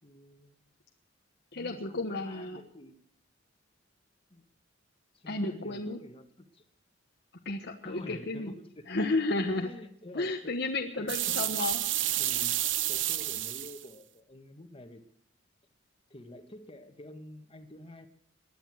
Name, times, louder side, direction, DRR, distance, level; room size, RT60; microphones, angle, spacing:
voice 1, 0.0-0.6 1.5-3.0 4.3-4.4 5.1-6.6 7.8-8.9 9.4-10.5 11.0-11.7 12.1-12.6 12.9-15.1 16.1-18.1, left 1 dB, 30° left, 6 dB, 1.6 m, -48 dB
voice 2, 1.5-2.6 5.3-6.0 7.4-8.5 8.9-9.7 10.1-11.8, left 2 dB, 65° left, 2 dB, 1.3 m, -32 dB
sound 1, 11.1-13.8, right 13 dB, 90° right, 0.9 m, -30 dB
19.5 x 11.5 x 6.4 m, 0.64 s
head